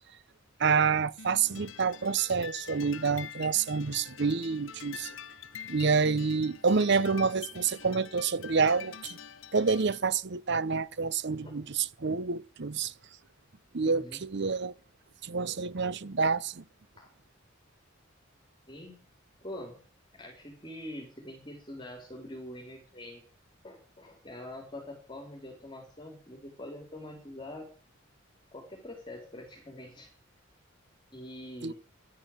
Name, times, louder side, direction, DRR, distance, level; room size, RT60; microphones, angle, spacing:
voice 1, 0.6-5.1 5.7-9.2 9.5-12.9 13.7-14.7 15.2-16.6 31.6-31.7, right 5 dB, 60° right, 0.8 m, -28 dB
sound 1, 1.2-10.0, left 8 dB, 75° left, 0.8 m, -46 dB
voice 2, 13.8-14.2 17.0-17.1 18.7-19.1 19.4-19.8 20.1-23.2 23.6-27.7 28.5-30.1 31.1-31.7, left 1 dB, 25° left, 4.2 m, -44 dB
11.5 x 10.5 x 8.9 m
head